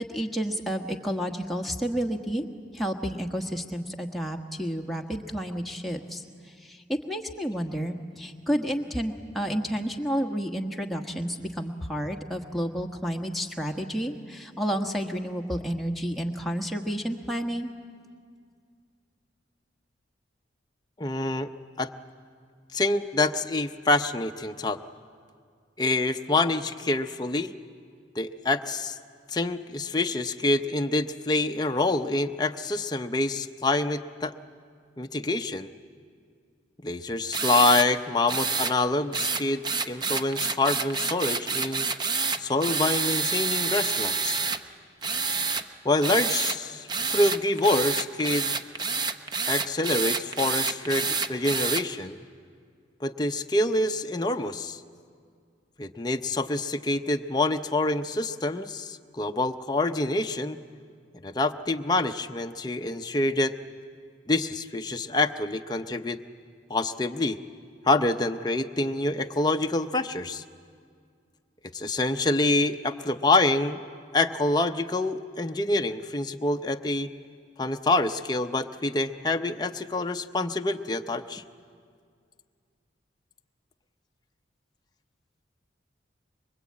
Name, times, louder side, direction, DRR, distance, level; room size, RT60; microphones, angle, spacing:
voice 1, 0.0-2.4 2.7-6.2 6.6-17.7, equal, ahead, 1 dB, 1.3 m, -30 dB
voice 2, 21.0-21.5 21.8-21.9 22.7-24.8 25.8-27.5 28.1-29.0 29.3-34.3 35.0-35.7 36.8-41.9 42.4-44.4 45.8-48.5 49.5-52.2 53.0-54.8 55.8-60.6 61.2-63.6 64.3-66.2 66.7-67.4 67.8-70.4 71.7-73.8 74.1-77.1 77.6-81.4, left 2 dB, 20° left, 5 dB, 0.7 m, -26 dB
sound 1, 37.3-37.9 38.3-38.7 39.1-44.6 45.0-45.6 46.0-46.6 46.9-51.8, right 4 dB, 25° right, 0.7 m, -28 dB
24.5 x 23.5 x 8.6 m, 2.2 s
head